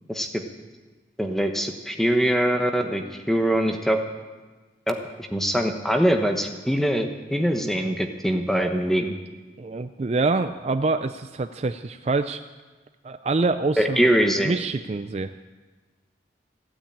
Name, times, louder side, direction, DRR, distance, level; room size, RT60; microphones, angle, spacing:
voice 1, 0.1-0.4 1.2-4.0 4.9-9.2 13.8-14.5, equal, ahead, 4 dB, 1.1 m, -23 dB
voice 2, 9.6-12.4 13.0-14.0 14.4-15.3, right 3 dB, 35° right, 9 dB, 0.4 m, -25 dB
15.5 x 8.9 x 8.7 m, 1.3 s
head